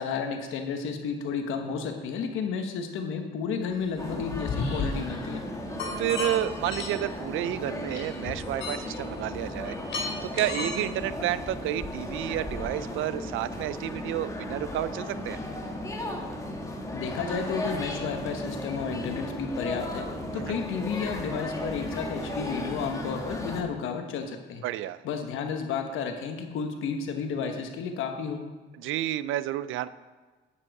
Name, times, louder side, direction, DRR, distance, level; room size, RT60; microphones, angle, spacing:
voice 1, 0.0-5.4 16.9-20.1 20.3-24.6 25.0-28.4, left 6 dB, 90° left, 5 dB, 1.2 m, -32 dB
sound 1, 3.9-4.9 5.8-6.3 6.7-6.9 7.9-9.0 9.5-10.8, left 4 dB, 75° left, 2.6 m, -33 dB
sound 2, 4.0-23.6, left 1 dB, 15° left, 1.5 m, -35 dB
voice 2, 5.9-9.8 10.2-15.4 20.3-20.6 24.6-25.0 28.8-29.9, right 13 dB, 85° right, 16 dB, 0.4 m, -30 dB
8.5 x 7.7 x 4.7 m, 1.3 s
cardioid pair, 90°, 20 cm